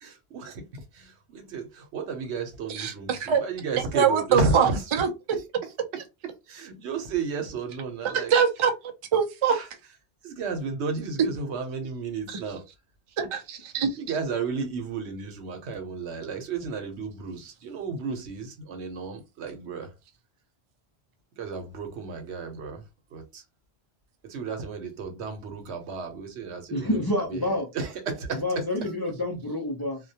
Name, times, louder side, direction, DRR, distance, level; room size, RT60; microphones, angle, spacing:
voice 1, 0.0-4.8 5.3-5.4 5.9-8.3 9.5-9.7 10.2-12.6 14.0-19.9 21.4-22.8 23.1-23.4 24.2-27.0 27.3-27.4 27.7-28.9, right 4 dB, 85° right, 1.0 m, -33 dB
voice 2, 2.7-3.4 3.9-5.1 8.3-8.7 9.1-9.6 12.3-12.4 13.2-13.9, right 7 dB, 50° right, 0.3 m, -23 dB
voice 3, 26.7-27.7 28.3-30.0, left 1 dB, 35° left, 0.4 m, -28 dB
2.3 x 2.2 x 2.7 m
omnidirectional pair, 1.1 m